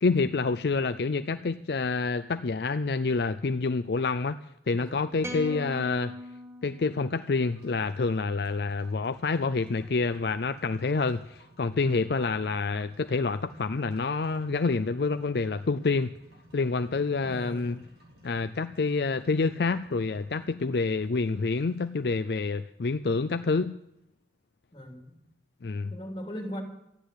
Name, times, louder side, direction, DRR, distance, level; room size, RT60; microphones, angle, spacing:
voice 1, 0.0-4.4 4.7-6.2 6.6-16.2 16.5-17.8 18.2-23.8 25.6-25.9, left 4 dB, 65° left, 11 dB, 0.5 m, -28 dB
voice 2, 4.7-5.7 17.2-17.8 24.7-25.2 25.9-26.6, equal, 25° left, 2 dB, 3.4 m, -41 dB
sound 1, 5.2-7.6, left 1 dB, 15° right, 1.5 m, -40 dB
sound 2, 7.4-23.4, right 1 dB, 65° right, 3.8 m, -55 dB
13.5 x 10.0 x 7.9 m, 0.82 s
head